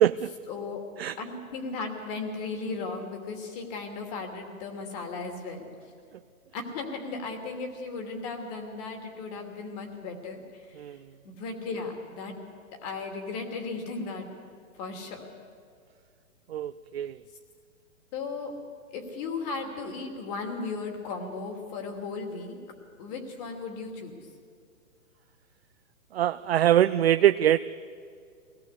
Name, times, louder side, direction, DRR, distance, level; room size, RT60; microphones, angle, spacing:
voice 1, 0.5-0.8 1.2-5.7 6.5-11.0 11.2-12.4 12.8-14.3 14.8-15.3 18.1-18.5 18.9-22.6 23.0-24.2, left 4 dB, 30° left, 3 dB, 2.9 m, -36 dB
voice 2, 16.5-17.1 26.1-27.6, right 11 dB, 50° right, 12 dB, 0.5 m, -22 dB
23.0 x 18.5 x 8.3 m, 2.2 s
hypercardioid pair, 160°, 42 cm